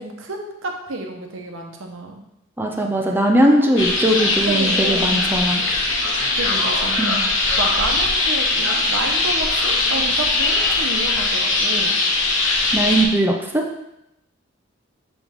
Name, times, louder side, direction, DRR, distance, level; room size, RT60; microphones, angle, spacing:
voice 1, 0.0-2.2 3.5-3.7 4.4-5.1 6.4-7.0 7.6-12.0, right 2 dB, 90° right, 2 dB, 1.0 m, -30 dB
voice 2, 2.6-5.6 7.0-7.2 12.7-13.6, right 1 dB, 10° right, 0 dB, 0.6 m, -19 dB
sound 1, 3.8-13.1, left 2 dB, 75° left, 1.1 m, -20 dB
6.3 x 5.4 x 3.6 m, 0.84 s
head